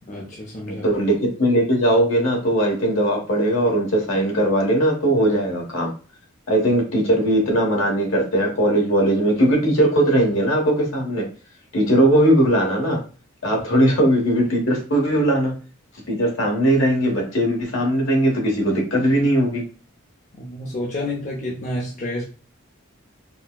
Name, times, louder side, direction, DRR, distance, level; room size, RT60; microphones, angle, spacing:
voice 1, 0.1-0.9 20.4-22.2, left 1 dB, 35° left, -3 dB, 0.5 m, -29 dB
voice 2, 0.7-5.9 6.5-11.3 11.7-13.0 13.4-15.5 16.1-19.6, right 1 dB, 70° left, 0 dB, 1.1 m, -19 dB
4.2 x 2.1 x 2.2 m, 0.36 s
head